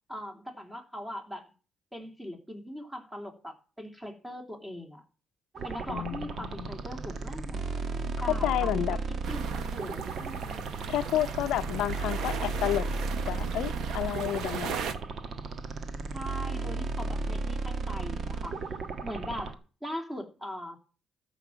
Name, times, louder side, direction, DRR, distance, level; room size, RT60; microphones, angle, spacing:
voice 1, 0.1-1.5 1.9-5.0 5.6-7.7 8.2-9.0 9.3-10.6 16.1-18.6 19.0-20.8, equal, 10° right, 3.3 m, -40 dB
sound 1, 5.5-19.5, right 3 dB, 50° right, 1.4 m, -34 dB
voice 2, 5.9-6.7 8.3-9.0 10.9-12.9 13.2-14.8, left 13 dB, 90° left, 0.6 m, -30 dB
sound 2, 9.2-14.9, right 7 dB, 80° right, 1.3 m, -37 dB
14.0 x 5.8 x 7.4 m
cardioid pair, 90°, 0 cm